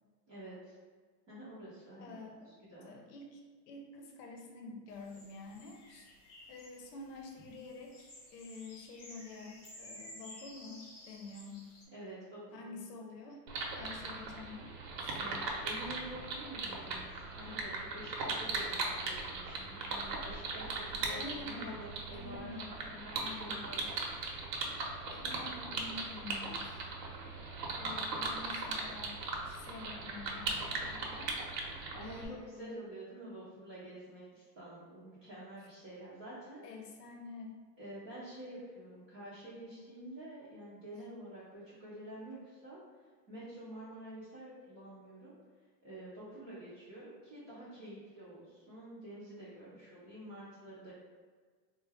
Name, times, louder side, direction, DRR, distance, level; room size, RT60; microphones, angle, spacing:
voice 1, 0.3-0.8 1.3-2.9 11.9-12.8 15.2-22.5 23.0-23.9 31.9-36.6 37.8-42.8 43.3-45.3 45.8-50.9, right 1 dB, 20° right, -12 dB, 0.5 m, -48 dB
voice 2, 2.0-2.5 2.8-3.4 3.7-6.1 6.5-11.6 12.5-13.4 13.8-14.7 15.0-15.2 21.1-21.8 22.1-23.6 24.6-29.2 29.4-31.3 32.0-32.7 35.6-35.7 36.6-37.6 46.3-46.4, left 3 dB, 75° left, 2 dB, 0.8 m, -48 dB
sound 1, 4.9-11.9, left 1 dB, 30° left, 0.8 m, -54 dB
sound 2, 13.5-32.2, right 3 dB, 70° right, 0.9 m, -39 dB
3.8 x 2.2 x 3.3 m, 1.5 s
supercardioid pair, 160°, 50 cm